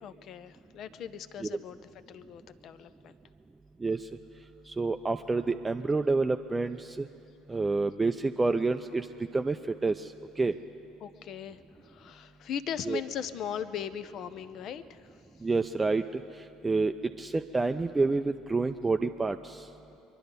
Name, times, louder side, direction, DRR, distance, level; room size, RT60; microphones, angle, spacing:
voice 1, 0.0-3.1 11.0-15.0, left 8 dB, 50° left, 13 dB, 0.6 m, -39 dB
voice 2, 4.7-7.1 7.5-9.1 9.3-9.6 9.8-10.1 10.4-10.5 12.9-13.0 15.4-16.2 16.6-19.7, right 3 dB, 20° right, 7 dB, 0.5 m, -28 dB
24.5 x 11.0 x 5.2 m, 2.8 s
figure-of-eight pair, 60°, 0 cm